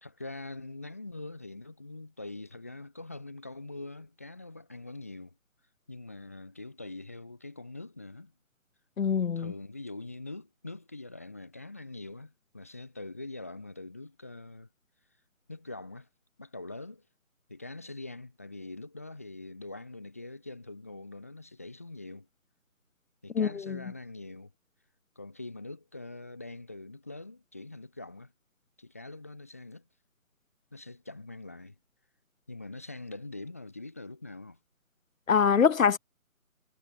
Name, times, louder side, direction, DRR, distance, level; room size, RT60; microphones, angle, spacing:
voice 1, 0.0-5.3 5.9-8.3 9.4-14.7 15.5-16.1 16.4-17.1 17.5-22.3 23.2-24.5 25.2-28.3 28.8-29.9 30.7-31.8 32.5-34.6, left 2 dB, 10° left, 0.9 m, -43 dB
voice 2, 9.0-9.5 23.4-23.8 35.3-36.0, left 6 dB, 70° left, 0.7 m, -24 dB
figure-of-eight pair, 160°, 41 cm